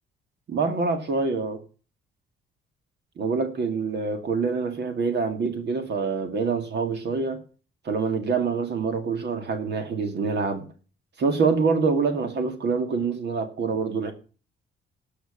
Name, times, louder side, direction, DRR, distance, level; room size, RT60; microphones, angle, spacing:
voice 1, 0.5-1.6 3.2-7.4 7.8-10.7 11.2-14.1, right 4 dB, 60° right, 2.0 m, -26 dB
11.5 x 5.9 x 8.7 m
cardioid pair, 90°, 20 cm